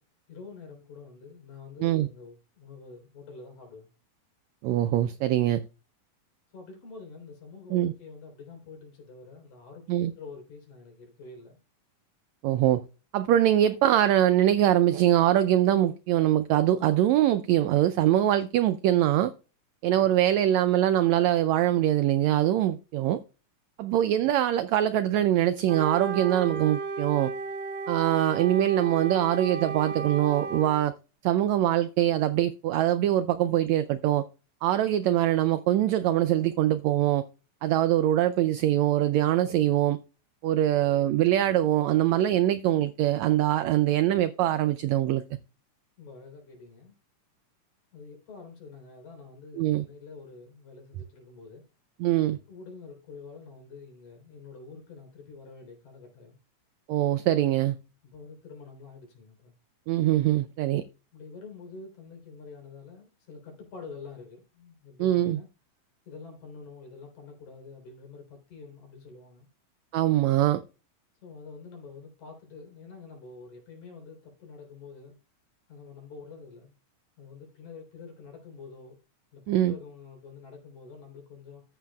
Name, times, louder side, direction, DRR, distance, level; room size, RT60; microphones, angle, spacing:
voice 1, 0.3-3.9 6.5-11.6 19.9-20.4 46.0-46.9 47.9-51.6 52.5-56.4 58.0-59.5 61.1-65.5 66.0-69.5 71.2-75.2 75.7-76.8 77.2-79.0 79.3-81.6, left 4 dB, 65° left, 4.9 m, -47 dB
voice 2, 4.6-5.6 7.7-7.9 9.9-10.1 12.4-12.8 13.1-19.3 19.8-23.2 23.8-27.3 27.9-30.9 31.2-34.2 34.6-37.2 37.6-40.0 40.4-45.2 49.6-49.8 52.0-52.4 56.9-57.8 59.9-60.8 65.0-65.4 69.9-70.6 79.5-79.7, right 12 dB, 90° right, 1.5 m, -23 dB
Wind instrument woodwind instrument, 25.6-30.9, right 4 dB, 50° right, 1.9 m, -34 dB
13.5 x 8.0 x 2.3 m
omnidirectional pair, 3.7 m